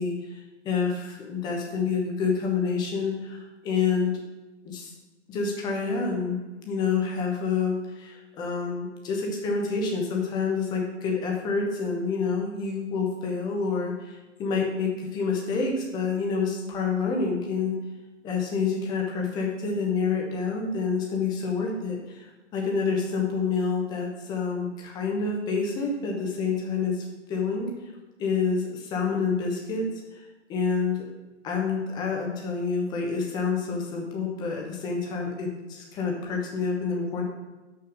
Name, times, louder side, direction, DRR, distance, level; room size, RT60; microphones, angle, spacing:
voice 1, 0.0-4.2 4.6-4.9 5.3-6.4 6.7-17.7 18.2-22.3 22.5-27.7 28.2-29.9 30.1-30.2 30.5-31.1 31.4-37.2, left 5 dB, 10° left, 0 dB, 0.9 m, -28 dB
6.0 x 5.8 x 6.2 m, 1.1 s
hypercardioid pair, 140°, 36 cm